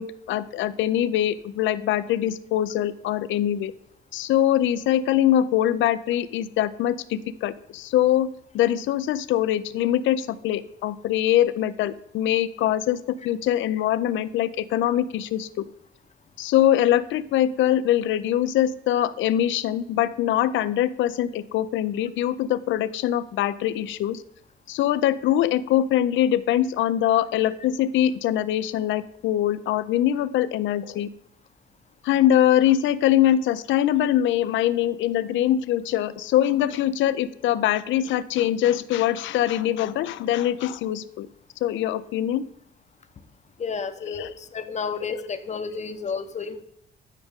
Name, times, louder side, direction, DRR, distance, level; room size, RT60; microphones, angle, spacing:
voice 1, 0.0-3.7 4.1-8.3 8.5-15.6 16.4-24.2 24.7-31.1 32.0-41.3 41.6-42.4 44.1-44.3, left 12 dB, 75° left, 14 dB, 0.4 m, -23 dB
voice 2, 43.6-46.6, left 5 dB, 35° left, 10 dB, 0.7 m, -31 dB
9.0 x 5.1 x 3.6 m, 0.75 s
cardioid pair, 90°, 20 cm